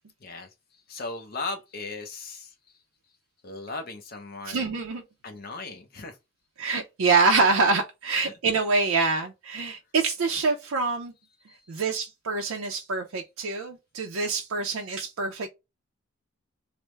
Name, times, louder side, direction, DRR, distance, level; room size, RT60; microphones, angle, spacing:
voice 1, 0.2-2.8 3.4-4.7 5.2-6.2 8.2-8.4 11.5-11.8, left 3 dB, 45° left, 0.5 m, -38 dB
voice 2, 4.5-5.0 6.6-11.1 11.7-15.5, right 4 dB, 85° right, 0.5 m, -25 dB
3.3 x 2.0 x 3.1 m
head